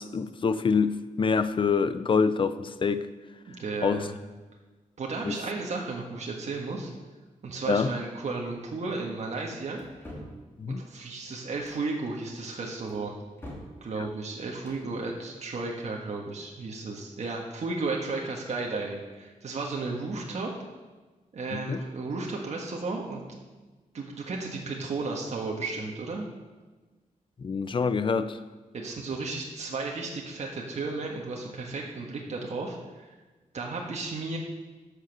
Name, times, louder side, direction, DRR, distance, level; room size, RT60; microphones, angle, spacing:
voice 1, 0.0-3.1 3.8-4.1 5.3-5.4 7.7-7.9 10.6-10.8 21.5-21.8 27.4-28.4, left 5 dB, 40° left, 12 dB, 0.5 m, -26 dB
voice 2, 3.5-4.1 5.0-6.9 7.4-9.8 10.7-13.1 13.8-20.5 21.3-23.2 23.9-26.3 28.7-33.2 33.5-34.4, right 3 dB, 55° right, -1 dB, 1.5 m, -34 dB
sound 1, 9.8-10.4 11.5-11.9 12.9-13.7 14.5-14.8, left 1 dB, 15° left, 2.6 m, -44 dB
11.5 x 6.7 x 6.7 m, 1.3 s
wide cardioid pair, 180°, 14 cm